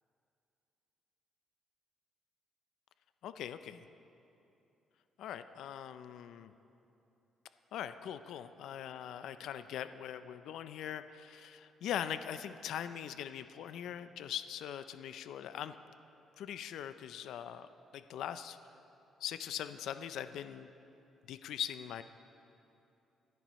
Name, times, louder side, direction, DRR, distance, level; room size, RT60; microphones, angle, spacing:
voice 1, 3.2-3.8 5.2-6.5 7.7-15.8 16.4-17.7 17.9-18.6 19.2-20.7 21.3-22.0, left 10 dB, 80° left, 11 dB, 0.4 m, -41 dB
24.0 x 10.5 x 3.1 m, 2.8 s
cardioid pair, 90°, 0 cm